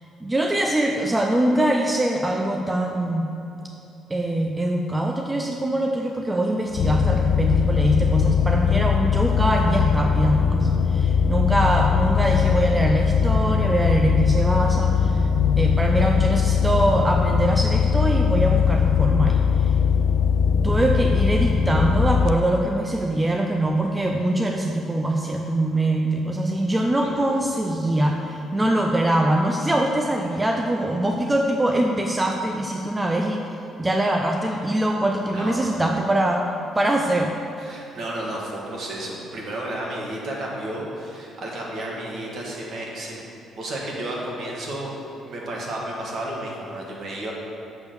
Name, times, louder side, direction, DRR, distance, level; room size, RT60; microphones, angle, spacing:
voice 1, 0.2-3.3 4.1-15.3 15.6-19.7 20.6-33.4 33.8-36.5 36.7-37.3, right 1 dB, 10° right, 2 dB, 0.5 m, -23 dB
sound 1, 6.7-22.3, left 7 dB, 65° left, 0.3 m, -20 dB
voice 2, 35.3-35.7 37.6-43.2 43.6-44.9 45.2-47.3, right 1 dB, 50° right, -3 dB, 1.9 m, -32 dB
6.9 x 6.2 x 6.9 m, 2.8 s
cardioid pair, 140°, 0 cm